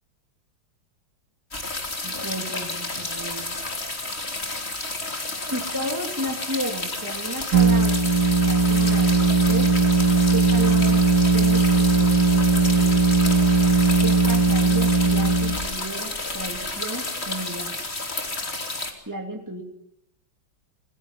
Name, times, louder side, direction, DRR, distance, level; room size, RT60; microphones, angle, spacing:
sound 1, 1.5-18.9, left 2 dB, 30° left, 3.4 m, -31 dB
voice 1, 2.0-3.6 5.5-8.1 8.5-9.9 10.3-11.0 11.3-12.4 12.8-12.9 14.0-17.7 19.1-19.6, right 1 dB, 10° right, 2 dB, 2.6 m, -33 dB
sound 2, 7.5-15.6, right 4 dB, 65° right, 2.5 m, -19 dB
28.0 x 20.5 x 5.7 m, 0.76 s
omnidirectional pair, 2.2 m